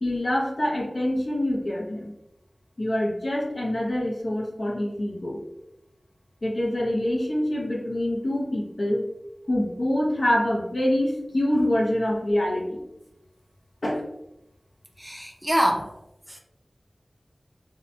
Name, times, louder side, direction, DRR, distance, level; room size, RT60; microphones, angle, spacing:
voice 1, 0.0-2.1 2.8-5.4 6.4-9.1 9.5-12.8 13.8-14.0, left 1 dB, 65° left, -3 dB, 0.6 m, -25 dB
voice 2, 15.0-15.9 16.3-16.4, equal, 10° right, 2 dB, 0.4 m, -25 dB
2.7 x 2.2 x 2.6 m, 0.88 s
wide cardioid pair, 45°, 0 cm